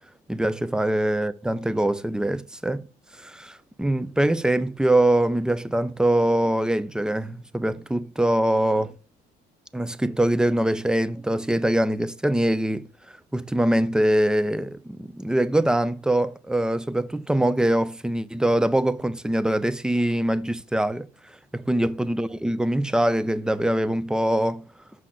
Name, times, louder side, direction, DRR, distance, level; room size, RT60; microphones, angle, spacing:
voice 1, 0.3-2.9 3.2-8.9 9.7-12.9 13.3-21.1 21.5-24.6, right 1 dB, 5° right, 0.4 m, -23 dB
6.2 x 5.7 x 3.8 m
cardioid pair, 110°, 17 cm